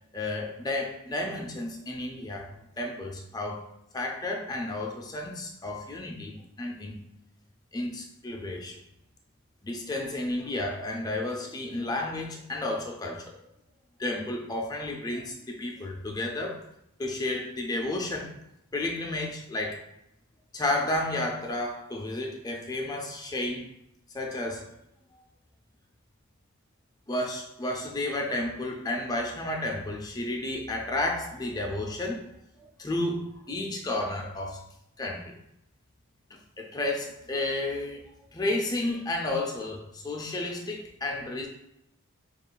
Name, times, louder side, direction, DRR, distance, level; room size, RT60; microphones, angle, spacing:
voice 1, 0.1-3.7 3.9-7.0 7.7-8.8 9.6-13.4 14.0-16.6 17.0-18.3 18.7-19.8 20.5-23.7 24.1-24.7 25.1-25.2 27.1-32.3 32.8-34.6 35.0-35.3 36.3-38.0 38.3-41.5, left 2 dB, 15° left, 2 dB, 0.4 m, -32 dB
6.6 x 2.4 x 2.3 m, 0.80 s
head